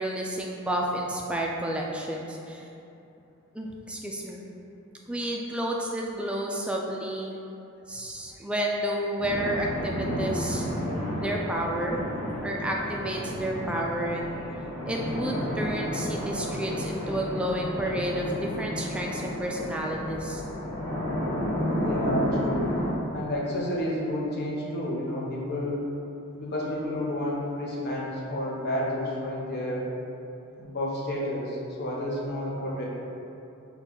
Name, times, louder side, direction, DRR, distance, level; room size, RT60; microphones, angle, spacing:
voice 1, 0.0-2.7 3.5-4.4 5.1-7.4 7.9-10.7 11.2-12.0 12.4-14.3 14.8-20.4, right 1 dB, 5° right, -2 dB, 0.3 m, -31 dB
sound 1, 9.2-22.9, equal, 15° left, 0.8 m, -31 dB
voice 2, 21.8-22.7 23.1-25.8 26.3-29.9 30.6-32.8, left 1 dB, 50° left, -5 dB, 0.7 m, -30 dB
4.2 x 2.3 x 3.7 m, 2.8 s
head